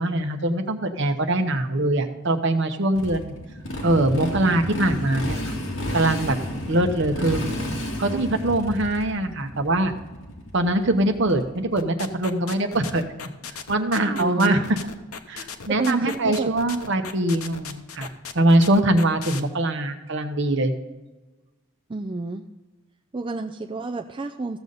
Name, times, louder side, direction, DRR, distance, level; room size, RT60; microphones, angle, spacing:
voice 1, 0.0-3.3 3.8-5.5 5.9-6.4 6.7-7.5 8.0-9.9 10.5-13.0 13.7-14.8 15.3-18.1 18.3-20.7, right 1 dB, 55° right, 6 dB, 1.0 m, -22 dB
Motorcycle, 2.9-11.6, equal, 65° left, 2.3 m, -32 dB
sound 1, 11.8-19.4, left 6 dB, 90° left, 0.8 m, -36 dB
voice 2, 14.2-14.6 15.8-16.6 18.0-18.1 21.9-22.5 23.1-24.6, right 3 dB, 25° right, 4 dB, 0.4 m, -29 dB
15.0 x 7.0 x 4.0 m, 1.2 s
head